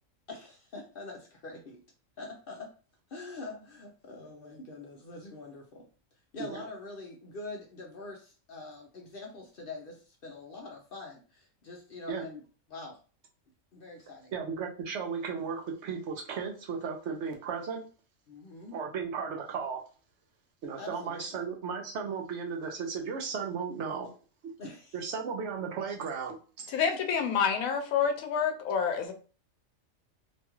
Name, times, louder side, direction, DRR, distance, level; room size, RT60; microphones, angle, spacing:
voice 1, 0.3-1.8 2.2-2.7 3.1-5.8 6.3-12.4 12.7-13.0 13.7-14.3 18.3-18.8 20.8-21.3 24.6-25.0 26.8-27.0, left 3 dB, 60° left, 1 dB, 0.6 m, -44 dB
voice 2, 14.3-17.8 18.7-19.8 20.6-24.1 24.4-24.5 24.9-26.7, right 6 dB, 65° right, 1 dB, 0.8 m, -35 dB
voice 3, 26.7-29.1, left 7 dB, 85° left, 6 dB, 1.0 m, -28 dB
3.0 x 2.3 x 2.9 m, 0.37 s
omnidirectional pair, 1.4 m